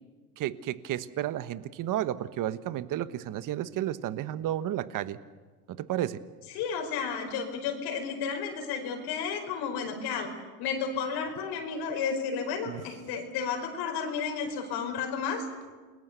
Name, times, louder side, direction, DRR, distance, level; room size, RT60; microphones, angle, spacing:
voice 1, 0.4-5.2 5.7-6.2 12.7-12.8, right 12 dB, 45° right, 14 dB, 1.2 m, -32 dB
voice 2, 6.5-10.3 10.6-15.4, left 6 dB, 60° left, 3 dB, 5.1 m, -32 dB
29.0 x 21.5 x 6.8 m, 1.4 s
supercardioid pair, 110°, 44 cm